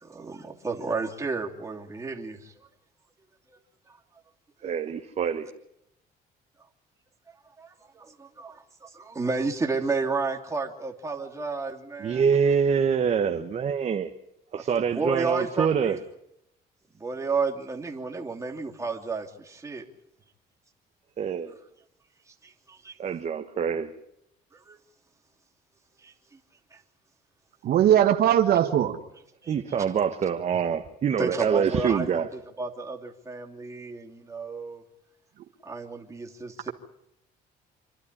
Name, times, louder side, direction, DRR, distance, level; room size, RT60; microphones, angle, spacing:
voice 1, 0.0-2.5 3.9-4.0 7.6-12.2 14.5-16.0 16.9-19.9 22.3-23.0 24.5-24.8 26.0-26.1 26.7-26.8 29.4-29.5 31.2-32.1 32.6-34.8 35.6-36.7, right 4 dB, 15° right, 2.9 m, -32 dB
voice 2, 4.6-5.5 12.0-14.1 14.5-16.0 21.2-21.6 23.0-23.9 29.5-32.3, right 7 dB, 40° right, 1.3 m, -25 dB
voice 3, 27.6-29.0, right 10 dB, 65° right, 1.5 m, -20 dB
26.5 x 12.0 x 10.0 m
cardioid pair, 110°, 17 cm